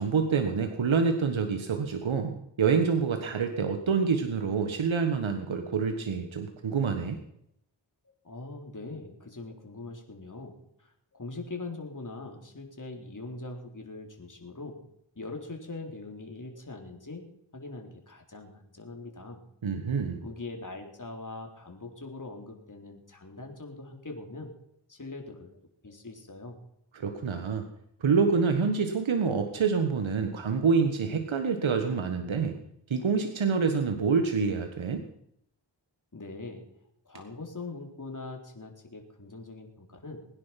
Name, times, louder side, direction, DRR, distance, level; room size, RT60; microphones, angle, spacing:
voice 1, 0.0-7.2 19.6-20.2 27.0-27.7 28.0-32.6 32.9-35.0, right 5 dB, 80° right, 6 dB, 1.5 m, -27 dB
voice 2, 8.1-14.8 15.2-17.3 17.5-19.4 20.2-24.5 24.9-25.6 25.8-26.6 36.1-36.7 37.1-40.2, left 3 dB, 40° left, 2 dB, 3.8 m, -42 dB
21.0 x 10.5 x 5.8 m, 0.74 s
cardioid pair, 45°, 46 cm